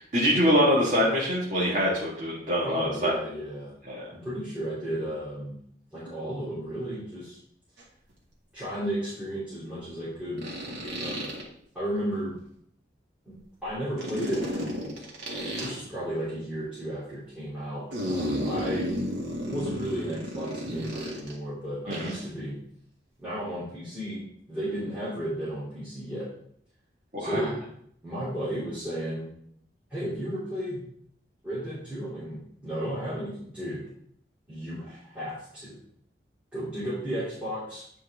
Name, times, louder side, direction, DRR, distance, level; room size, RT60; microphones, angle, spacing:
voice 1, 0.1-3.1 3.9-4.1 21.9-22.1 27.1-27.5, equal, 45° right, -8 dB, 1.9 m, -24 dB
voice 2, 2.6-3.7 4.2-5.6 5.9-7.4 8.5-10.4 11.0-11.3 11.7-12.3 13.2-15.0 15.6-18.9 19.5-22.6 23.2-24.2 24.5-26.3 27.2-27.6 28.0-29.3 29.9-30.8 31.4-33.8 34.5-35.7 36.5-37.8, equal, 5° right, -13 dB, 2.9 m, -34 dB
sound 1, 7.8-7.9 10.4-11.4 14.0-15.7 17.9-21.3 21.9-22.3, equal, 85° right, 2.2 m, -32 dB
9.9 x 4.7 x 3.6 m, 0.66 s
head